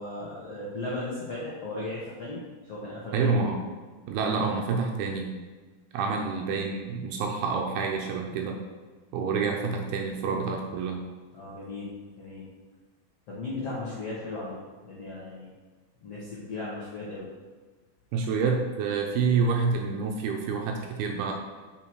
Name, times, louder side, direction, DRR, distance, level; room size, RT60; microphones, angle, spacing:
voice 1, 0.0-2.4 2.7-3.3 6.2-6.3 11.3-12.5 13.3-15.5 16.0-17.3, left 2 dB, 65° left, -7 dB, 1.5 m, -36 dB
voice 2, 3.1-3.6 4.1-5.3 5.9-8.6 9.1-11.0 18.1-21.3, right 4 dB, 75° right, 2 dB, 2.4 m, -28 dB
7.2 x 5.9 x 4.6 m, 1.3 s
omnidirectional pair, 4.9 m